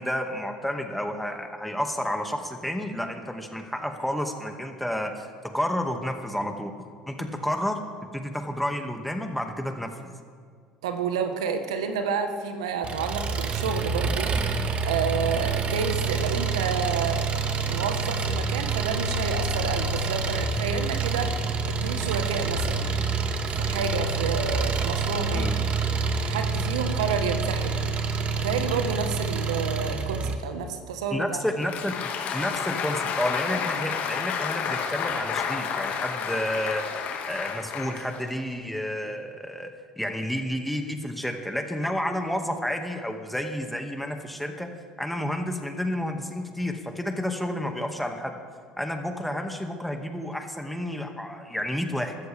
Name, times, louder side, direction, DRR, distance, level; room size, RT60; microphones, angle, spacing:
voice 1, 0.0-5.3 5.5-6.7 7.1-7.8 8.1-10.1 25.3-25.6 30.2-30.3 31.1-36.8 37.3-39.7 40.0-44.7 45.0-48.4 48.8-52.2, left 1 dB, 5° left, 4 dB, 2.1 m, -30 dB
voice 2, 10.8-17.3 17.6-22.9 23.5-25.5 26.2-27.8 28.4-31.4, right 6 dB, 80° right, 7 dB, 1.4 m, -30 dB
Engine, 12.8-30.4, right 4 dB, 40° right, 1.7 m, -27 dB
Applause, 31.4-38.5, left 7 dB, 55° left, 2.0 m, -30 dB
23.5 x 13.5 x 3.6 m, 2.1 s
hypercardioid pair, 70°, 3 cm